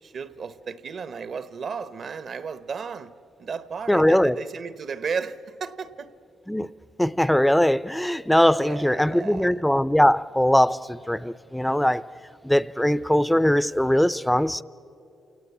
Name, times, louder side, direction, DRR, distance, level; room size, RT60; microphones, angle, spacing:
voice 1, 0.0-3.1 3.4-6.1 8.6-9.6, right 5 dB, 50° right, 0.9 m, -34 dB
voice 2, 3.9-4.4 6.5-6.7 7.0-12.0 12.4-14.6, equal, 5° left, 0.5 m, -21 dB
28.5 x 18.0 x 8.3 m
cardioid pair, 90°, 0 cm